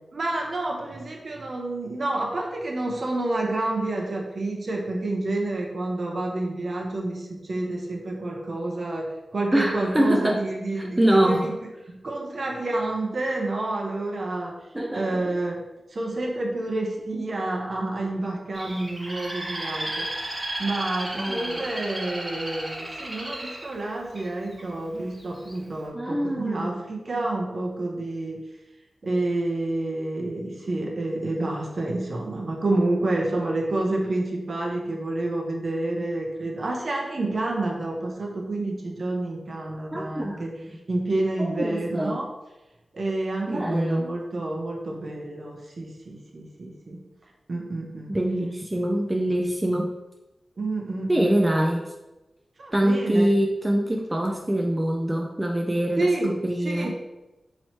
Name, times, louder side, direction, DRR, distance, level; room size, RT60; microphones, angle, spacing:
voice 1, 0.1-11.5 11.9-14.6 14.9-15.6 15.9-20.1 20.6-28.4 29.0-40.5 40.9-42.3 42.9-47.1 47.5-48.1 50.6-51.5 52.6-53.3 56.0-56.3 56.6-56.9, right 2 dB, 55° right, 0 dB, 0.7 m, -29 dB
voice 2, 9.5-10.5 10.8-11.6 14.7-15.3 21.1-21.6 25.9-26.8 39.9-40.8 41.4-42.2 43.5-44.1 48.1-49.9 51.1-51.9 52.7-56.9, right 1 dB, 15° right, 1 dB, 0.3 m, -24 dB
Bird, 18.6-24.6 25.2-25.6, right 1 dB, 35° right, 1.1 m, -34 dB
3.0 x 3.0 x 4.2 m, 1.0 s
wide cardioid pair, 85°, 0 cm